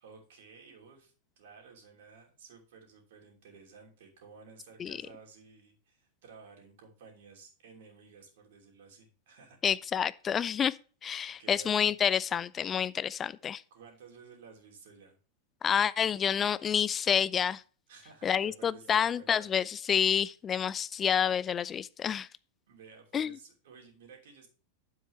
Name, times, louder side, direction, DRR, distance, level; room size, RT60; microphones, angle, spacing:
voice 1, 0.0-9.6 11.4-11.9 13.7-15.2 17.9-19.5 22.7-24.5, right 5 dB, 55° right, 2.8 m, -54 dB
voice 2, 9.6-10.8 11.0-13.6 15.6-17.6 18.2-22.3 23.1-23.3, left 8 dB, 25° left, 0.3 m, -28 dB
9.4 x 7.6 x 3.2 m
figure-of-eight pair, 90°, 0 cm